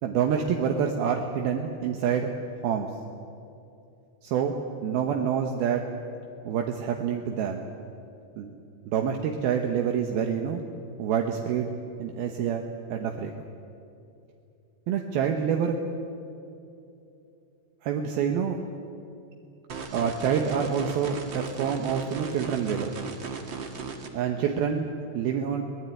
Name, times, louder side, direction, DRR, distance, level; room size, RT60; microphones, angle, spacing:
voice 1, 0.0-2.3 2.6-2.9 4.2-4.6 4.8-5.8 6.5-7.6 8.4-8.5 8.9-10.6 11.0-11.7 12.0-12.6 12.9-13.3 14.9-15.8 17.8-18.6 19.9-22.9 24.1-24.9 25.1-25.6, right 7 dB, 75° right, 3 dB, 3.0 m, -27 dB
sound 1, 19.7-24.1, right 5 dB, 45° right, 1.7 m, -36 dB
24.0 x 19.0 x 9.2 m, 2.7 s
omnidirectional pair, 4.6 m